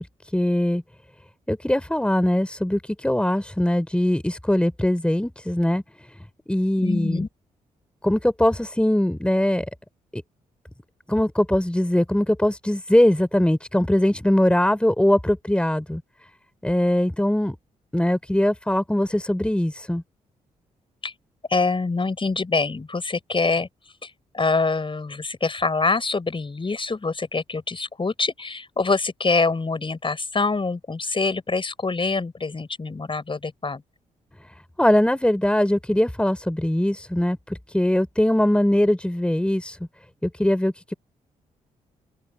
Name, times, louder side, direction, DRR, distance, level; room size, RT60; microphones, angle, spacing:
voice 1, 0.3-0.8 1.5-5.8 6.5-7.2 8.0-9.7 10.1-10.2 11.1-16.0 16.6-17.6 17.9-20.0 34.8-37.4 37.7-39.8 40.2-40.9, left 1 dB, 5° left, 3.8 m, -21 dB
voice 2, 6.8-7.3 21.0-21.1 21.5-23.7 24.0-33.8, left 3 dB, 35° left, 6.0 m, -25 dB
open air
supercardioid pair, 50°, 15 cm